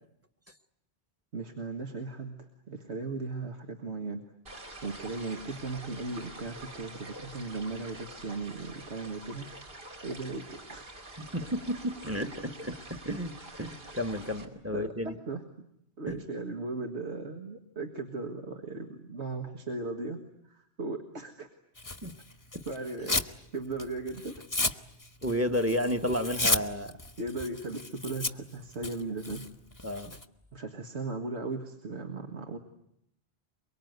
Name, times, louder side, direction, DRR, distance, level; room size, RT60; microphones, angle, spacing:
voice 1, 1.3-4.3 4.8-9.5 10.0-10.9 14.7-15.7 16.0-20.2 20.4-21.5 22.7-23.2 23.5-24.3 27.2-29.4 30.5-32.6, right 3 dB, 80° right, 4 dB, 2.0 m, -37 dB
sound 1, 4.5-14.5, right 1 dB, 60° right, 2.9 m, -46 dB
voice 2, 11.2-13.3 13.6-15.2 16.1-16.2 22.0-22.1 22.5-22.6 25.2-26.9 29.8-30.2, equal, 15° right, 9 dB, 1.1 m, -32 dB
Tearing, 21.8-23.4 23.7-30.2, left 2 dB, 20° left, 1.0 m, -33 dB
23.5 x 23.5 x 9.4 m, 0.76 s
omnidirectional pair, 1.1 m